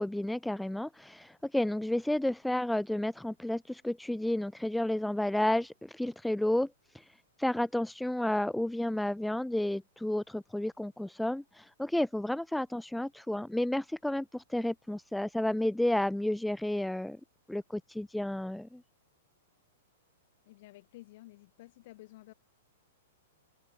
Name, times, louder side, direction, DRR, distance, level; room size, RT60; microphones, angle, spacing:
voice 1, 0.0-7.1 7.4-17.2 17.5-18.8, left 1 dB, 5° left, 0.4 m, -31 dB
voice 2, 20.5-22.3, left 18 dB, 55° left, 4.4 m, -52 dB
figure-of-eight pair, 110°, 0 cm